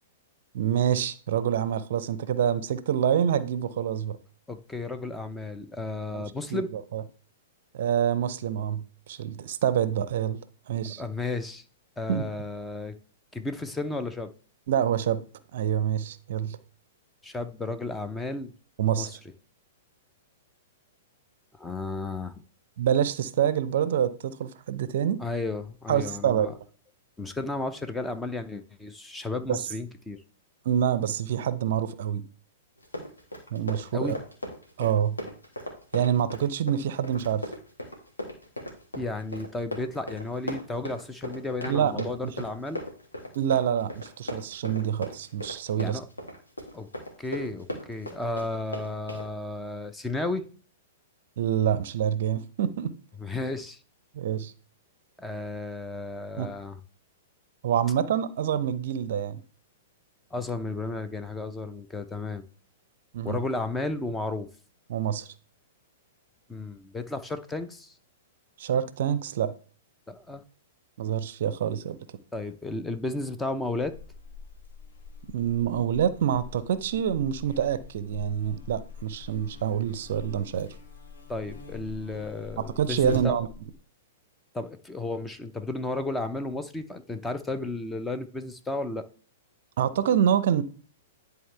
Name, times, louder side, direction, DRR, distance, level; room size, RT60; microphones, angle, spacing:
voice 1, 0.5-4.2 6.1-7.0 7.7-10.4 10.7-11.0 12.1-12.2 14.7-15.2 15.5-16.6 18.8-19.2 22.8-25.2 25.9-26.6 29.5-29.6 30.6-32.2 33.5-34.2 34.8-35.2 35.9-37.4 41.7-42.3 43.3-46.0 51.4-52.9 54.1-54.5 56.4-56.5 57.6-59.4 63.1-63.4 64.9-65.3 68.6-69.5 71.0-72.0 75.3-80.7 82.6-83.5 89.8-90.6, right 9 dB, 55° right, 0.6 m, -26 dB
voice 2, 4.5-6.7 11.0-11.6 12.0-13.0 13.3-14.3 17.2-18.5 19.0-19.2 21.6-22.3 25.2-26.5 27.2-30.2 33.9-34.2 38.9-42.8 45.8-46.1 46.7-46.9 47.2-50.5 53.2-53.8 55.2-56.8 60.3-62.4 63.2-64.5 66.5-67.9 70.1-70.4 72.3-74.0 81.3-83.4 84.5-89.1, left 2 dB, 10° left, 0.7 m, -33 dB
Run, 32.8-49.3, left 1 dB, 85° left, 1.8 m, -37 dB
Buzz, 73.8-83.8, left 4 dB, 70° left, 1.3 m, -44 dB
10.5 x 4.0 x 3.3 m
figure-of-eight pair, 105°, 0 cm